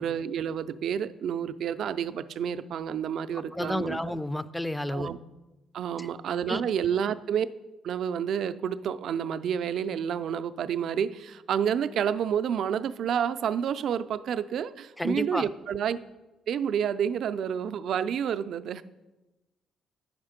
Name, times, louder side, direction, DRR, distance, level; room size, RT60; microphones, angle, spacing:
voice 1, 0.0-4.1 4.9-5.2 5.7-7.5 7.8-16.0 16.5-18.8, right 8 dB, 70° right, 12 dB, 0.4 m, -29 dB
voice 2, 3.5-5.1 6.0-6.1 6.5-6.6 15.0-15.5, left 1 dB, 5° left, 15 dB, 0.4 m, -30 dB
8.7 x 6.5 x 5.0 m, 1.1 s
cardioid pair, 90°, 0 cm